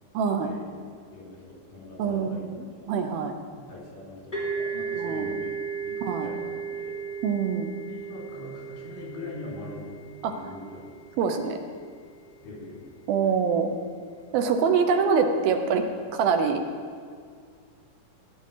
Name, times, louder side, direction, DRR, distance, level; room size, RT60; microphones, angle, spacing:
voice 1, 0.1-0.5 2.0-2.6 2.9-3.3 4.9-5.3 6.0-6.3 7.2-7.7 10.2-10.3 11.2-11.6 13.1-13.7 14.3-15.8 16.1-16.6, right 6 dB, 75° right, 6 dB, 2.7 m, -24 dB
voice 2, 1.1-2.4 2.8-2.9 3.6-5.6 5.8-6.0 6.2-7.0 7.9-10.0 10.3-10.9 12.4-12.9, left 2 dB, 75° left, -4 dB, 6.0 m, -42 dB
sound 1, 4.3-11.8, right 5 dB, 15° left, 2.9 m, -35 dB
17.0 x 9.9 x 5.7 m, 2.1 s
omnidirectional pair, 4.4 m